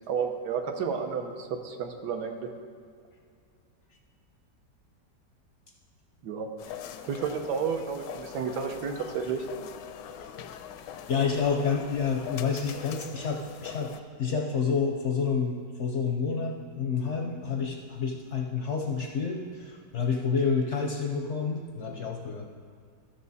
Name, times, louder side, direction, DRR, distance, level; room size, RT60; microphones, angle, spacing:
voice 1, 0.1-2.5 6.2-6.5 7.0-9.4, right 6 dB, 70° right, 5 dB, 1.4 m, -31 dB
sound 1, 6.6-14.0, left 9 dB, 80° left, 1.2 m, -42 dB
voice 2, 11.1-13.9 14.2-22.5, left 5 dB, 60° left, 2 dB, 0.7 m, -29 dB
13.0 x 6.6 x 4.1 m, 2.3 s
omnidirectional pair, 1.9 m